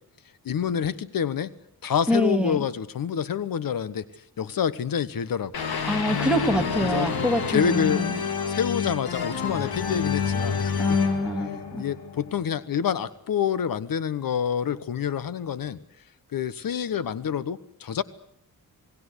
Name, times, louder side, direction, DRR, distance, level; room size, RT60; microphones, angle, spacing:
voice 1, 0.4-1.5 1.8-5.7 6.8-7.1 7.5-8.0 8.5-11.0 11.8-15.8 16.3-18.0, left 8 dB, 65° left, 16 dB, 1.2 m, -27 dB
voice 2, 2.1-2.7 5.9-8.2 10.8-11.8, equal, 5° right, 4 dB, 2.6 m, -25 dB
sound 1, 5.5-12.5, left 6 dB, 90° left, 3.6 m, -28 dB
28.5 x 19.5 x 8.2 m, 0.72 s
wide cardioid pair, 140°, 36 cm